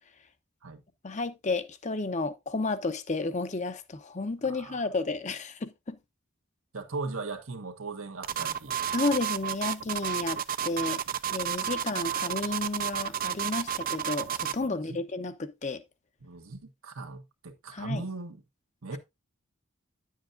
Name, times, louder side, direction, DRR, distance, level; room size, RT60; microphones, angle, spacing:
voice 1, 1.0-6.0 8.9-11.0 11.3-15.8 17.7-18.0, left 3 dB, 35° left, 0.7 m, -32 dB
voice 2, 4.4-4.9 6.7-8.8 14.6-15.0 16.2-18.4 18.8-19.0, right 3 dB, 80° right, 1.4 m, -38 dB
sound 1, 8.2-14.7, right 9 dB, 45° right, 0.5 m, -31 dB
10.5 x 7.3 x 2.6 m
head